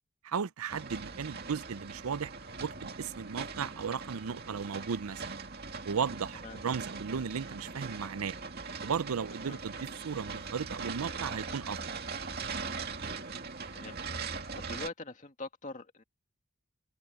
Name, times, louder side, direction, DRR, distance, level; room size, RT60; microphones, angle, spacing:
voice 1, 0.2-2.3 2.6-5.4 5.8-8.3 8.8-12.0, right 6 dB, 90° right, 0.5 m, -35 dB
sound 1, 0.7-14.9, right 4 dB, 45° right, 2.4 m, -41 dB
voice 2, 13.1-16.0, left 3 dB, 35° left, 2.2 m, -45 dB
head